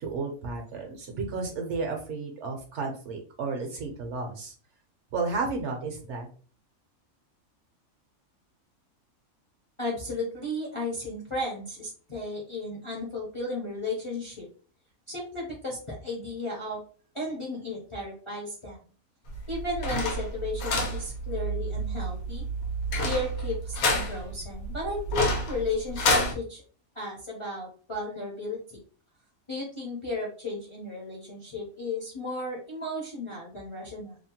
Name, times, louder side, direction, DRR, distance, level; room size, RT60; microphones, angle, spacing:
voice 1, 0.0-4.5 5.1-6.3, right 4 dB, 65° right, 2 dB, 0.9 m, -32 dB
voice 2, 9.8-14.5 15.1-16.8 17.1-18.8 19.5-22.5 23.0-26.6 26.9-28.6 29.5-34.2, left 2 dB, 35° left, -3 dB, 0.5 m, -34 dB
sound 1, 19.3-26.3, equal, 85° left, 1.1 m, -29 dB
2.8 x 2.1 x 2.8 m, 0.40 s
omnidirectional pair, 1.5 m